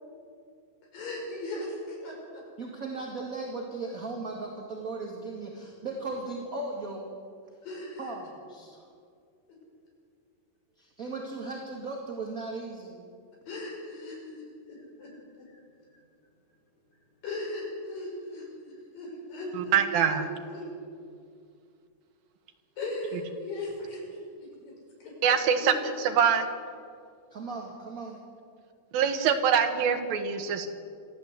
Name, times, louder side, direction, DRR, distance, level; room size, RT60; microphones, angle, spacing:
voice 1, 0.9-2.4 7.6-8.1 13.5-15.6 15.9-16.0 17.2-20.6 22.8-24.0 24.4-24.7 25.0-25.1 25.6-25.9, left 1 dB, 75° left, -2 dB, 7.3 m, -38 dB
voice 2, 2.6-7.1 8.0-8.8 10.8-13.1 27.3-28.2, right 3 dB, 30° right, 0 dB, 1.9 m, -37 dB
voice 3, 19.6-20.3 25.2-25.7 26.1-26.5 28.9-30.7, right 7 dB, 85° right, 6 dB, 3.3 m, -24 dB
26.5 x 13.0 x 8.3 m, 2.3 s
omnidirectional pair, 4.0 m